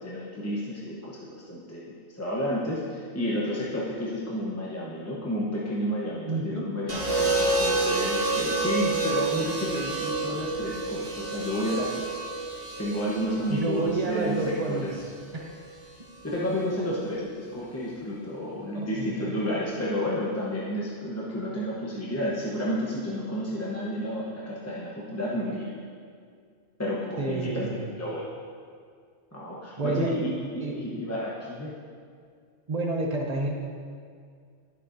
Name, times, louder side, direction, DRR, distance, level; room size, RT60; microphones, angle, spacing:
voice 1, 0.0-12.2 12.8-15.0 16.2-25.7 26.8-27.7 28.0-28.3 29.3-31.7, equal, 15° left, -6 dB, 0.9 m, -31 dB
voice 2, 6.3-6.7 13.5-14.9 15.3-15.6 18.7-19.4 27.2-27.9 29.8-30.1 30.6-30.7 32.7-33.5, right 2 dB, 35° right, 0 dB, 0.9 m, -29 dB
sound 1, 6.9-15.0 16.3-16.7, right 3 dB, 70° right, 1.8 m, -29 dB
11.0 x 7.2 x 2.7 m, 2.1 s
omnidirectional pair, 1.3 m